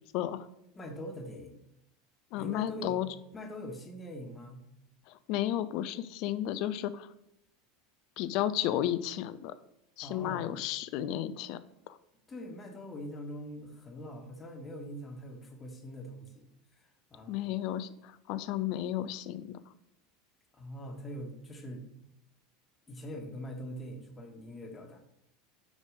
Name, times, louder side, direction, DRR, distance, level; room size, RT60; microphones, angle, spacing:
voice 1, 0.1-0.5 2.3-3.1 5.1-7.1 8.2-9.5 10.0-11.6 11.9-12.0 17.3-19.6, left 12 dB, 50° left, 14 dB, 0.4 m, -33 dB
voice 2, 0.7-1.6 2.4-3.0 3.3-4.6 10.0-10.6 12.3-16.5 16.8-17.5 20.5-21.9 22.9-25.0, equal, 20° left, 2 dB, 1.3 m, -43 dB
5.1 x 4.9 x 5.1 m, 0.80 s
figure-of-eight pair, 75°, 0 cm